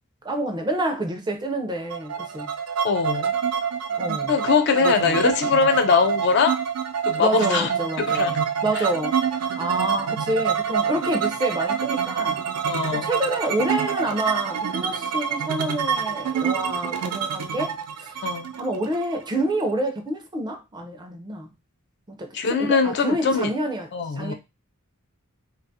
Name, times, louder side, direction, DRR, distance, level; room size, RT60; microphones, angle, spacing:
voice 1, 0.2-2.5 4.0-4.4 4.8-5.2 7.2-8.4 8.6-12.4 12.9-18.3 18.6-21.5 22.1-24.3, right 1 dB, 20° right, 0.4 m, -28 dB
sound 1, 1.9-19.6, right 7 dB, 80° right, 0.4 m, -26 dB
voice 2, 2.8-3.3 4.3-6.6 7.1-7.7 8.0-8.4 12.7-13.1 18.2-18.5 22.3-23.5 23.9-24.3, left 5 dB, 50° left, 0.4 m, -22 dB
2.4 x 2.3 x 2.6 m
head